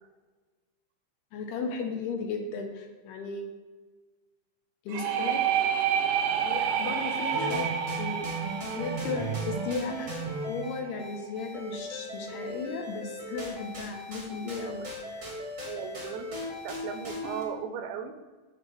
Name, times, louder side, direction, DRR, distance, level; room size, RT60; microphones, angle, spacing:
voice 1, 1.3-3.5 4.9-5.4 6.4-7.7 8.0-8.3 8.7-10.2 10.5-14.8 15.2-15.3, left 4 dB, 75° left, 3 dB, 2.7 m, -35 dB
sound 1, 4.9-10.5, right 8 dB, 70° right, 2.2 m, -29 dB
sound 2, 7.3-17.4, right 1 dB, 40° right, 1.0 m, -37 dB
voice 2, 15.6-16.3 16.6-18.2, right 7 dB, 90° right, 8 dB, 2.9 m, -36 dB
15.0 x 5.2 x 3.3 m, 1.3 s
omnidirectional pair, 5.2 m